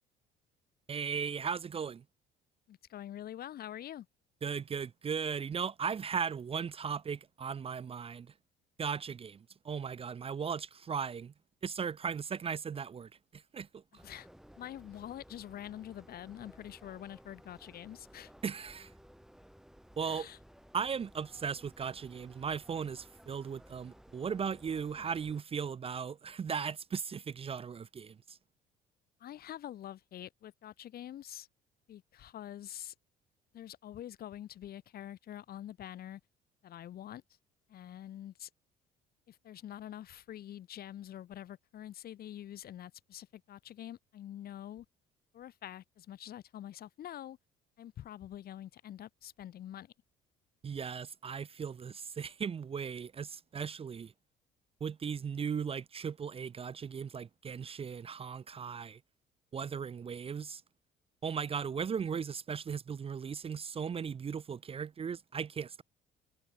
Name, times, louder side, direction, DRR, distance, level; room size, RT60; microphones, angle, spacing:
voice 1, 0.9-2.0 4.4-8.3 8.8-11.3 11.6-13.8 18.4-18.9 20.0-20.3 20.7-28.4 50.6-54.1 54.8-59.0 59.5-60.6 61.2-65.8, right 6 dB, 30° right, 0.6 m, -37 dB
voice 2, 2.7-4.1 14.0-14.3 14.6-18.3 20.0-20.4 29.2-31.5 31.9-32.9 33.5-36.2 36.6-37.2 37.7-38.5 39.3-44.8 45.3-47.4 47.8-49.9, left 11 dB, 60° left, 1.4 m, -46 dB
sound 1, 14.0-25.4, equal, ahead, 4.5 m, -58 dB
supercardioid pair, 75°, 18 cm